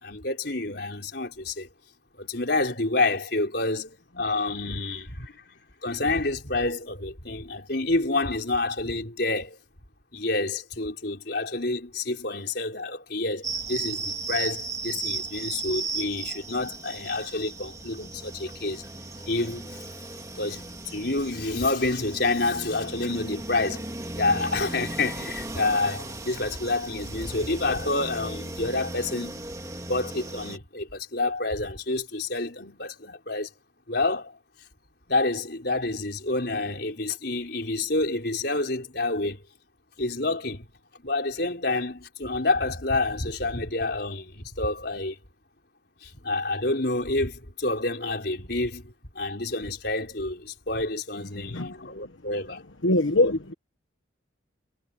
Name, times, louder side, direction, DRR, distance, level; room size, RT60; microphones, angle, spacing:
voice 1, 0.0-1.7 2.2-5.3 5.8-9.6 10.1-18.8 19.3-19.7 20.4-20.6 20.9-23.8 24.1-29.5 29.9-33.5 33.9-34.3 35.1-39.4 40.0-40.6 41.0-45.2 46.0-52.6, left 2 dB, 55° left, 4.9 m, -28 dB
sound 1, 13.4-30.6, right 3 dB, 15° right, 2.0 m, -36 dB
voice 2, 51.4-51.7 52.0-52.2 52.8-53.5, left 2 dB, 85° left, 1.4 m, -23 dB
head